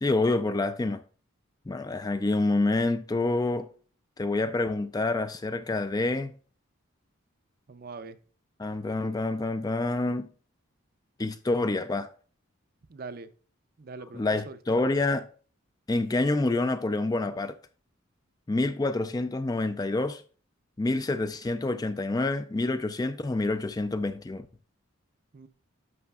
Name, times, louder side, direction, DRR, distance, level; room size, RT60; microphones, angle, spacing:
voice 1, 0.0-1.0 1.7-3.7 4.2-6.3 8.6-10.3 11.2-12.1 14.1-15.3 15.9-17.6 18.5-20.2 20.8-24.5, left 2 dB, 20° left, 0.3 m, -27 dB
voice 2, 7.7-8.2 12.9-13.3 13.8-14.8 25.3-25.5, right 4 dB, 45° right, 0.5 m, -42 dB
11.0 x 6.4 x 2.3 m
head